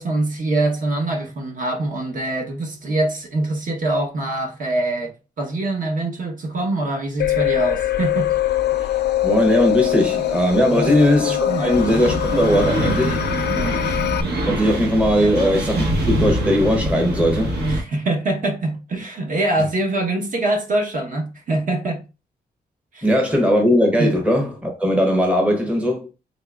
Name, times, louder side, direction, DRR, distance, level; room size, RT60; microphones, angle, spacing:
voice 1, 0.0-8.3 8.8-9.0 10.7-11.0 11.5-11.8 13.5-13.8 15.2-15.3 17.6-22.0 22.9-23.1 24.0-24.2, right 2 dB, 50° right, 1.0 m, -24 dB
sound 1, 7.2-14.2, left 12 dB, 80° left, 0.4 m, -23 dB
voice 2, 9.2-13.2 14.5-17.6 23.0-26.1, equal, 10° right, 0.7 m, -19 dB
sound 2, 11.7-17.8, right 1 dB, 75° right, 1.2 m, -24 dB
4.1 x 3.6 x 2.3 m
wide cardioid pair, 160°, 17 cm